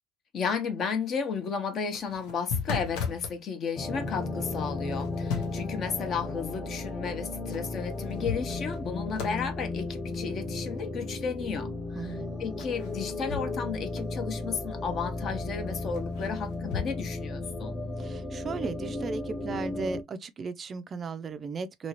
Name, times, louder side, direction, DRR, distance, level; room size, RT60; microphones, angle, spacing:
voice 1, 0.3-17.7, left 6 dB, 45° left, 0.8 m, -33 dB
laptop throw against wall thud slam roomy various, 1.9-3.4 4.9-5.7 7.5-7.6 8.0-8.9 9.2-9.5 12.6-13.7 14.0-14.1 15.9-16.9, left 6 dB, 85° left, 0.9 m, -35 dB
sound 1, 3.8-20.0, left 2 dB, 20° left, 0.5 m, -35 dB
voice 2, 12.0-12.4 18.0-21.9, right 4 dB, 30° right, 0.4 m, -36 dB
2.8 x 2.7 x 2.9 m
cardioid pair, 130°, 0 cm